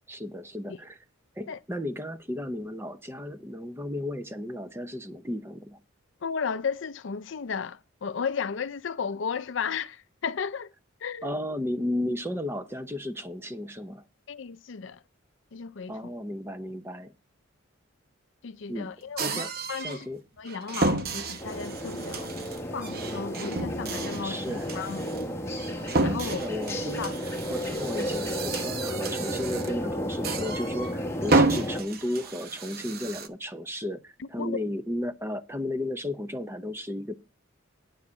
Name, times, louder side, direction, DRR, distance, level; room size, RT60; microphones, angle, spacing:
voice 1, 0.1-1.0 1.4-5.8 11.2-14.0 15.9-17.1 18.7-18.9 19.2-19.5 19.8-20.2 24.2-24.7 26.2-27.1 27.5-37.2, left 1 dB, 10° right, 0.7 m, -34 dB
voice 2, 6.2-10.7 11.0-11.3 14.3-15.0 15.5-16.1 18.4-20.1 20.4-22.4 22.7-25.1 26.0-26.5 27.0-27.2 34.2-34.6, left 6 dB, 60° left, 0.5 m, -34 dB
sound 1, 19.2-20.0 20.4-29.8 30.2-30.9 31.2-33.3, right 3 dB, 50° right, 0.8 m, -31 dB
sound 2, 21.4-31.8, equal, 10° left, 1.1 m, -33 dB
9.6 x 4.7 x 7.4 m
head